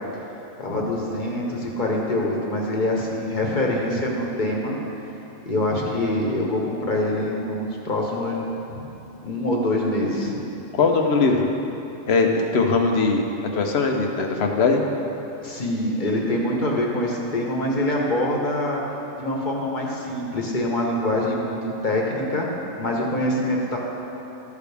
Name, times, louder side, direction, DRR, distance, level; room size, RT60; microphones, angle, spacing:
voice 1, 0.6-4.7 5.4-8.9 9.2-10.4 15.4-18.8 19.1-21.6 21.8-22.5 22.8-23.8, left 1 dB, 40° left, -2 dB, 1.3 m, -25 dB
voice 2, 10.7-11.5 12.1-13.2 13.5-14.8, left 4 dB, 55° left, 3 dB, 1.0 m, -20 dB
13.5 x 6.7 x 3.4 m, 2.9 s
omnidirectional pair, 1.4 m